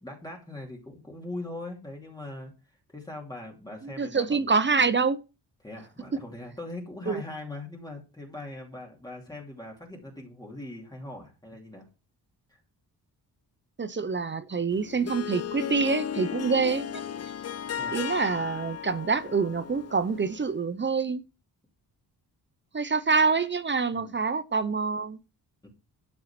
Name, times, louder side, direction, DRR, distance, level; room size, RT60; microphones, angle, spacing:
voice 1, 0.0-4.5 5.6-11.9 12.5-12.6 17.8-18.0 23.9-24.2 25.6-25.7, left 2 dB, 10° left, 2.7 m, -41 dB
voice 2, 3.8-5.2 7.1-7.2 13.8-17.0 17.9-21.2 22.7-25.2, right 5 dB, 30° right, 0.8 m, -26 dB
Harp, 14.7-20.5, left 9 dB, 40° left, 0.5 m, -35 dB
12.0 x 7.0 x 6.0 m
wide cardioid pair, 150°, 40 cm